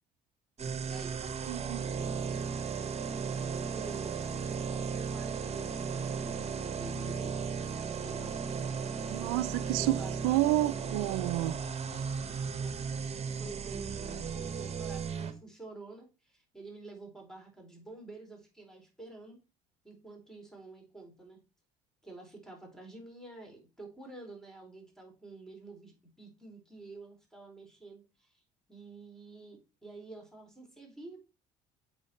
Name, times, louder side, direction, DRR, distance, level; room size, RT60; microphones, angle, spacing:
sound 1, 0.6-15.3, right 6 dB, 35° right, 1.3 m, -35 dB
voice 1, 0.9-2.5 3.3-7.5 7.8-8.5 8.9-10.5 11.9-13.1 13.4-19.4 19.8-21.4 22.0-28.4 28.7-31.2, right 2 dB, 5° left, 4.0 m, -49 dB
voice 2, 1.5-1.9 9.1-10.0 10.2-11.6, right 17 dB, 80° right, 0.4 m, -29 dB
8.1 x 4.5 x 4.4 m
supercardioid pair, 70°, 18 cm